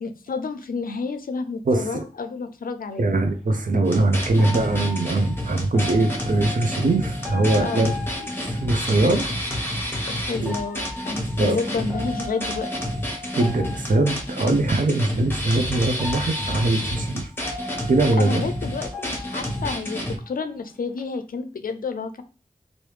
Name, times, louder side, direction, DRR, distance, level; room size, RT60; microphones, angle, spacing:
voice 1, 0.0-3.0 7.6-7.9 10.1-12.7 18.2-22.2, left 4 dB, 80° left, 9 dB, 0.4 m, -30 dB
voice 2, 1.7-2.1 3.0-7.9 8.2-9.3 10.4-10.5 11.4-11.6 13.4-17.3 17.9-18.4, right 2 dB, 70° right, 6 dB, 0.6 m, -22 dB
sound 1, 2.9-3.0 4.4-9.1 10.4-14.6 15.4-15.5 16.0-20.4 20.7-21.0, left 2 dB, 5° right, 0.8 m, -38 dB
sound 2, 3.8-20.2, equal, 15° left, 1.0 m, -29 dB
3.1 x 2.6 x 3.2 m, 0.36 s
wide cardioid pair, 60°, 14 cm